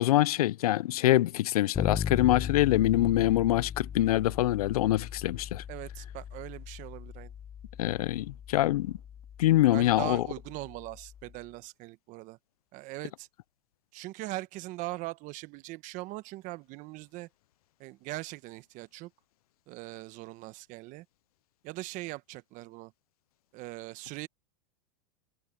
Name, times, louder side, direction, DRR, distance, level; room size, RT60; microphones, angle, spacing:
voice 1, 0.0-5.6 7.8-9.0 9.4-10.2, left 15 dB, 90° left, 0.4 m, -25 dB
Bass guitar, 1.7-11.4, left 8 dB, 15° left, 0.4 m, -38 dB
voice 2, 5.7-7.3 9.7-12.4 12.7-13.3 13.9-17.3 17.8-19.1 19.7-21.0 21.6-22.9 23.5-24.3, right 20 dB, 45° right, 1.1 m, -41 dB
supercardioid pair, 130°, 18 cm